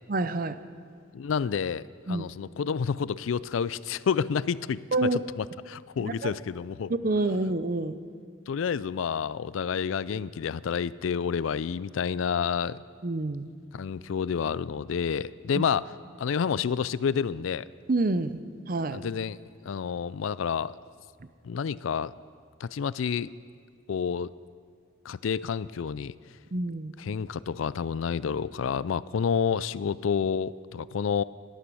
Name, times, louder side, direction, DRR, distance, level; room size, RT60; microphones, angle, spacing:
voice 1, 0.1-0.6 2.1-2.3 4.9-5.2 6.0-6.4 6.9-8.0 13.0-13.5 15.5-15.6 17.9-18.4 18.7-19.0 26.5-26.9, right 2 dB, 45° right, 12 dB, 0.6 m, -27 dB
voice 2, 1.1-6.9 8.5-12.8 13.7-15.8 16.2-17.6 18.9-19.4 19.6-20.8 21.4-22.1 22.6-23.3 23.9-24.3 25.1-26.1 27.0-31.2, left 6 dB, 85° left, 19 dB, 0.4 m, -29 dB
17.0 x 11.5 x 6.3 m, 2.1 s
head